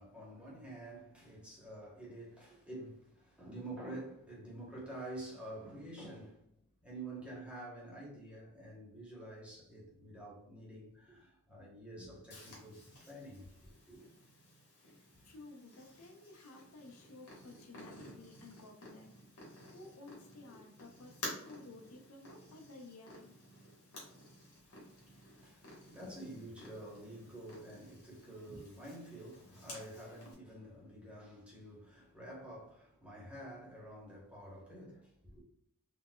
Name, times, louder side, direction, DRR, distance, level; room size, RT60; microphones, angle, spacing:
voice 1, 0.0-6.4 6.8-12.8 13.1-13.5 13.9-14.0 24.7-24.9 25.3-35.4, right 1 dB, 5° right, 0.9 m, -48 dB
Purr, 12.3-30.3, left 1 dB, 90° left, 1.3 m, -53 dB
voice 2, 14.8-19.1 19.7-23.3, left 2 dB, 70° left, 0.6 m, -54 dB
3.9 x 2.2 x 2.2 m
head